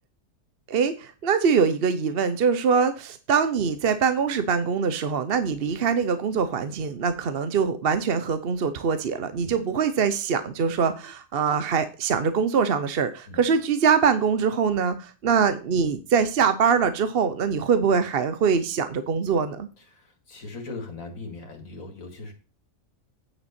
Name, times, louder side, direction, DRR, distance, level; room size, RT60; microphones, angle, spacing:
voice 1, 0.7-19.7, right 6 dB, 50° right, 10 dB, 0.8 m, -23 dB
voice 2, 19.8-22.3, left 3 dB, 80° left, 3 dB, 2.5 m, -39 dB
9.1 x 6.4 x 4.3 m, 0.35 s
omnidirectional pair, 1.4 m